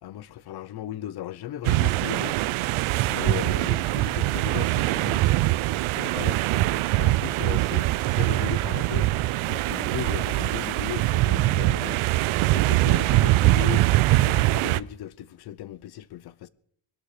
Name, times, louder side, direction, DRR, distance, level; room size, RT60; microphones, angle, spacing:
voice 1, 0.0-2.4 3.1-5.4 5.9-6.7 6.9-9.1 9.4-12.1 12.4-13.9 14.1-16.5, left 12 dB, 50° left, 0.7 m, -37 dB
sound 1, 1.6-14.8, right 17 dB, 85° right, 0.6 m, -23 dB
21.5 x 12.5 x 5.0 m
cardioid pair, 180°, 48 cm